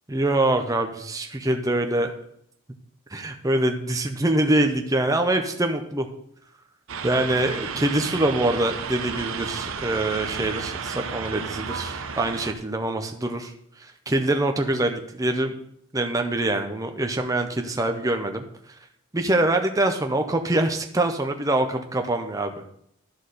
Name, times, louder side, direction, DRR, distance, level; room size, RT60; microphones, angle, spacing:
voice 1, 0.1-2.1 3.1-6.1 7.0-13.5 13.8-15.6 15.9-18.4 19.1-22.5, right 1 dB, 15° right, 5 dB, 0.6 m, -24 dB
sound 1, 6.9-12.5, right 5 dB, 70° right, 0.8 m, -32 dB
11.5 x 4.2 x 6.4 m, 0.73 s
head